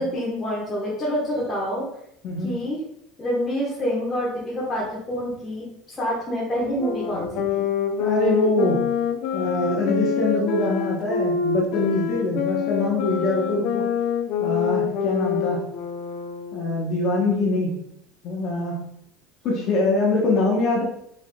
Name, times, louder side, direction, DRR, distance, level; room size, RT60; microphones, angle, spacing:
voice 1, 0.0-1.9 2.4-2.8 3.2-7.7, equal, 20° left, -6 dB, 1.3 m, -27 dB
voice 2, 2.2-2.5 8.0-8.8 9.3-13.9 14.4-15.6 16.5-17.7 18.2-18.8 19.4-20.8, left 2 dB, 50° left, -3 dB, 1.1 m, -23 dB
sound 1, 6.7-16.8, left 8 dB, 65° left, 0.5 m, -26 dB
4.6 x 4.3 x 2.3 m, 0.76 s
supercardioid pair, 125°, 0 cm